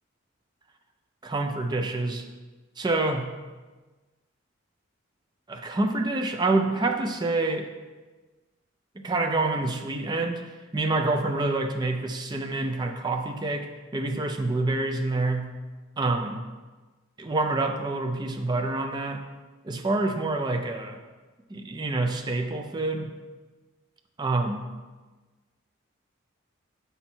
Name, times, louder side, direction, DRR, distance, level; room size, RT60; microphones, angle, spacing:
voice 1, 1.2-2.2 2.8-3.3 5.5-7.7 9.0-10.4 10.7-15.6 16.0-16.4 17.2-19.2 19.6-21.0 21.5-23.1 24.2-24.6, right 2 dB, 20° right, 4 dB, 0.4 m, -27 dB
6.9 x 4.3 x 4.3 m, 1.3 s
head